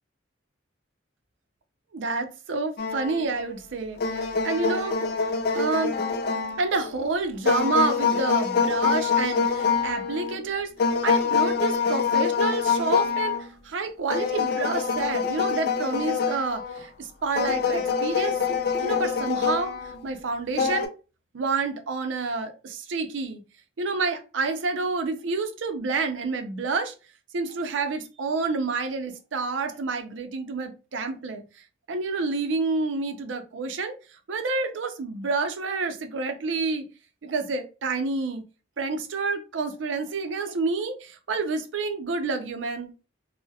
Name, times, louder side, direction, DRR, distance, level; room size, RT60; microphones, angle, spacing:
voice 1, 1.9-5.0 5.5-5.9 6.6-10.7 11.0-18.4 18.8-20.9 21.3-23.4 23.8-26.9 27.3-31.4 31.9-33.9 34.3-36.8 37.2-38.4 38.8-42.9, right 4 dB, 85° right, 0.5 m, -29 dB
sound 1, 2.8-3.5 4.0-6.9 7.5-10.4 10.8-13.5 14.1-16.9 17.4-20.0 20.6-20.9, left 5 dB, 55° left, 0.4 m, -25 dB
2.3 x 2.0 x 2.6 m
head